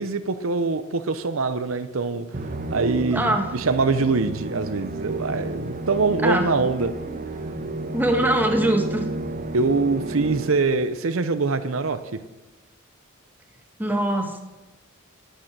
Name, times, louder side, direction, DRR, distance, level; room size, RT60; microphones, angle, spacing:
voice 1, 0.0-2.3 2.7-6.9 9.5-12.0, right 3 dB, 75° right, 10 dB, 0.8 m, -23 dB
Musical instrument, 2.3-10.8, right 2 dB, 45° right, 1.2 m, -32 dB
voice 2, 3.1-3.6 6.2-6.5 7.9-9.1 13.8-14.4, right 1 dB, 10° right, 3 dB, 1.7 m, -22 dB
11.5 x 10.5 x 7.5 m, 1.0 s
head